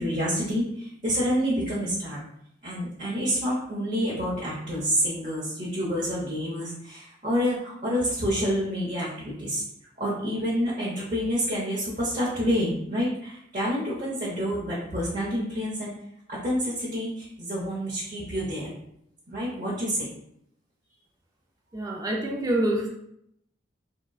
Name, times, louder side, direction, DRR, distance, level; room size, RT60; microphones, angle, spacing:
voice 1, 0.0-2.2 2.6-9.6 10.0-15.9 16.3-18.7 19.3-20.1, equal, 40° right, -7 dB, 0.7 m, -28 dB
voice 2, 21.7-22.9, right 1 dB, 20° right, -1 dB, 0.4 m, -26 dB
3.7 x 2.1 x 2.3 m, 0.74 s
head